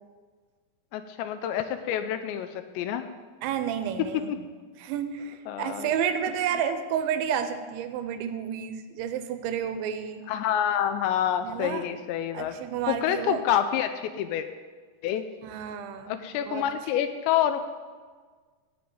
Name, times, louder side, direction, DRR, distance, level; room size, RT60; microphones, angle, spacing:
voice 1, 0.9-3.1 4.0-4.4 5.5-5.9 10.3-12.5 12.9-14.5 15.0-15.2 16.1-17.6, left 10 dB, 80° left, 9 dB, 2.7 m, -27 dB
voice 2, 3.4-4.5 4.8-10.3 11.4-11.8 12.3-13.4 15.4-16.7, right 8 dB, 85° right, 9 dB, 3.1 m, -31 dB
15.0 x 5.1 x 9.3 m, 1.5 s
omnidirectional pair, 5.3 m